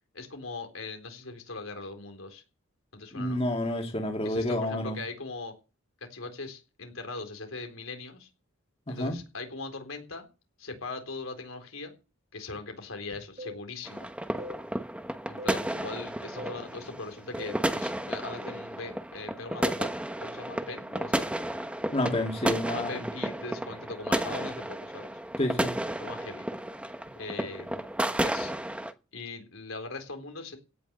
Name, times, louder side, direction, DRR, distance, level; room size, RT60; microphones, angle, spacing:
voice 1, 0.1-2.4 2.9-3.4 4.2-5.5 6.0-8.3 8.9-10.3 10.6-11.9 12.3-14.1 15.3-21.3 22.7-25.1 26.0-26.4 27.2-27.8 28.2-28.5 29.1-30.6, left 3 dB, 85° left, 4.0 m, -40 dB
voice 2, 3.1-5.0 8.9-9.2 21.9-23.0 25.4-25.7, left 1 dB, 30° left, 2.4 m, -29 dB
sound 1, 13.4-13.6 14.4-14.6 15.4-15.6 16.4-16.6 17.4-17.6 18.4-18.7, left 1 dB, 35° right, 2.6 m, -41 dB
sound 2, 13.8-28.9, right 1 dB, 5° right, 1.1 m, -32 dB
17.0 x 6.2 x 8.1 m
head